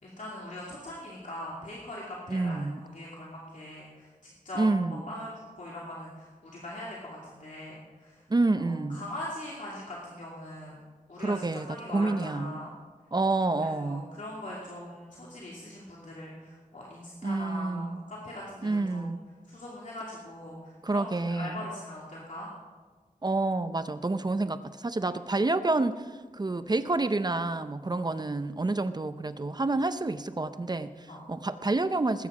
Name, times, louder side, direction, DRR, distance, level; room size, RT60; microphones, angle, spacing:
voice 1, 0.0-8.2 8.5-10.8 11.1-12.7 13.8-19.1 19.5-22.5 27.9-28.1 31.1-31.2, left 1 dB, 60° left, -4 dB, 2.5 m, -41 dB
voice 2, 2.3-2.8 4.6-5.1 8.3-9.0 11.2-12.6 13.1-14.1 17.2-18.0 18.6-19.2 20.8-21.7 23.2-32.3, right 2 dB, 30° right, 11 dB, 0.6 m, -28 dB
19.5 x 9.2 x 4.9 m, 1.4 s
wide cardioid pair, 100°, 14 cm